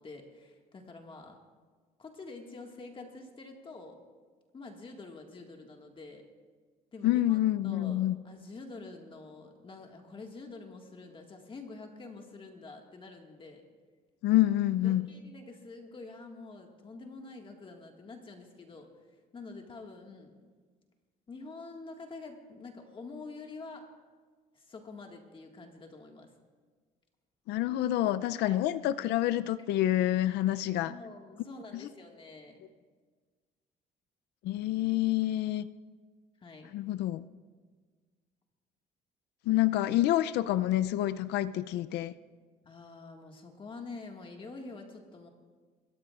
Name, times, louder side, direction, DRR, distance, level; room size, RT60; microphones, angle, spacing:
voice 1, 0.0-1.4 2.0-4.0 4.5-6.2 6.9-7.4 7.6-13.7 14.8-18.9 19.3-20.4 21.3-23.9 24.6-26.3 28.4-28.6 30.9-32.7 36.4-36.7 42.7-45.3, left 3 dB, 30° left, 2 dB, 1.8 m, -47 dB
voice 2, 7.0-8.2 14.2-15.1 27.5-30.9 31.7-31.9 34.4-35.7 36.7-37.2 39.5-42.1, left 14 dB, 80° left, 13 dB, 0.5 m, -27 dB
27.0 x 14.0 x 2.5 m, 1.5 s
cardioid pair, 110°, 17 cm